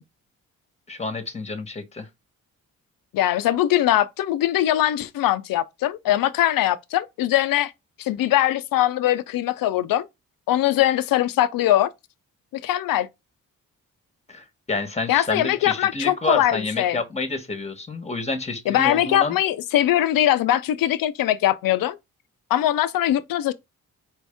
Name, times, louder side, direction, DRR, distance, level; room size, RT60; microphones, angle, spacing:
voice 1, 0.9-2.1 14.3-19.4, left 3 dB, 20° left, 1.1 m, -29 dB
voice 2, 3.1-7.7 8.0-10.1 10.5-11.9 12.6-13.1 15.1-17.0 18.7-22.0 22.5-23.5, left 13 dB, 75° left, 0.5 m, -21 dB
4.6 x 2.7 x 3.4 m
cardioid pair, 70°, 34 cm